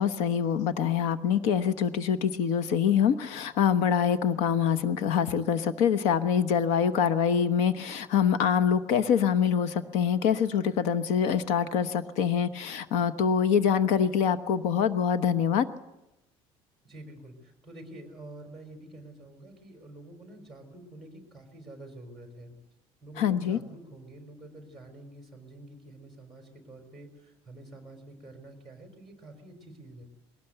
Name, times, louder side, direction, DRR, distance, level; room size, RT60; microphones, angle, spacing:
voice 1, 0.0-15.7 23.2-23.6, left 8 dB, 85° left, 11 dB, 1.1 m, -25 dB
voice 2, 16.8-22.5 23.0-30.1, right 1 dB, ahead, 4 dB, 4.4 m, -48 dB
22.0 x 18.5 x 8.0 m, 0.93 s
cardioid pair, 175°, 12 cm